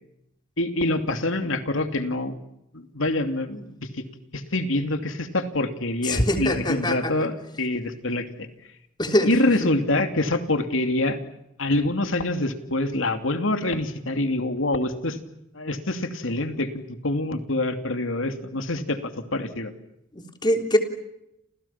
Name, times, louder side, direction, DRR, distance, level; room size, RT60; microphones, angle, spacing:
voice 1, 0.6-2.4 2.7-3.6 4.0-4.1 4.3-8.5 9.2-11.2 11.6-15.2 15.5-19.7, left 2 dB, 75° left, 7 dB, 2.8 m, -25 dB
voice 2, 6.0-7.1 9.0-9.3 20.1-20.8, left 1 dB, 25° left, 5 dB, 3.5 m, -23 dB
29.5 x 28.5 x 5.9 m, 0.82 s
head